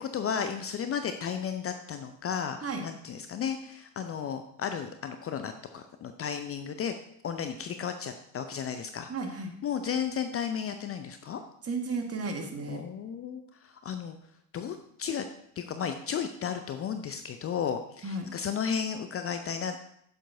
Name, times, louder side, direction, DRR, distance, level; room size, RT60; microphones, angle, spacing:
voice 1, 0.0-6.9 7.2-9.1 9.6-11.4 12.7-14.2 14.5-15.3 15.6-19.8, left 7 dB, 30° left, 8 dB, 0.6 m, -34 dB
voice 2, 9.1-9.5 11.6-12.8 18.0-18.3, right 3 dB, 30° right, 3 dB, 1.7 m, -33 dB
11.0 x 7.4 x 2.7 m, 0.72 s
figure-of-eight pair, 55°, 47 cm